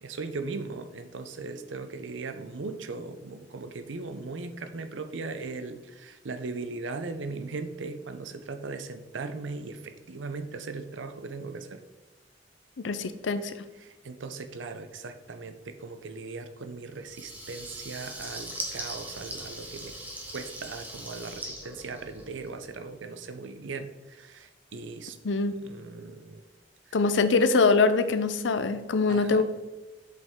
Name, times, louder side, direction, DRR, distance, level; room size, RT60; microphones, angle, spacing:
voice 1, 0.0-11.8 13.8-19.9 20.3-25.2 25.6-26.4 29.1-29.4, right 3 dB, 90° right, 8 dB, 0.6 m, -38 dB
voice 2, 12.8-13.6 25.2-25.5 26.9-29.4, left 4 dB, 75° left, 11 dB, 0.5 m, -23 dB
Water tap faucet / Liquid, 17.1-22.6, right 1 dB, 10° right, 1.1 m, -40 dB
7.6 x 5.3 x 3.6 m, 1.2 s
head